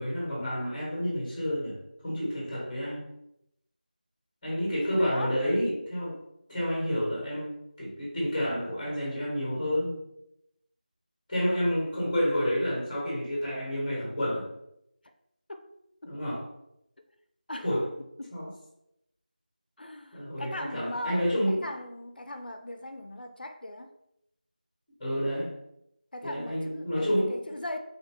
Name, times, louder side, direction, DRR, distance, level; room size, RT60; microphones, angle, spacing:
voice 1, 0.0-1.8 2.0-3.0 4.4-6.2 6.5-9.9 11.3-14.5 16.0-16.4 17.6-17.9 18.3-18.5 20.1-21.6 25.0-25.5 26.2-27.4, equal, 10° left, -5 dB, 0.8 m, -29 dB
voice 2, 4.8-5.4 15.5-15.7 17.5-17.7 18.2-18.4 19.8-23.9 26.1-27.8, left 1 dB, 85° left, 6 dB, 0.3 m, -39 dB
2.8 x 2.0 x 3.3 m, 0.81 s
figure-of-eight pair, 175°, 5 cm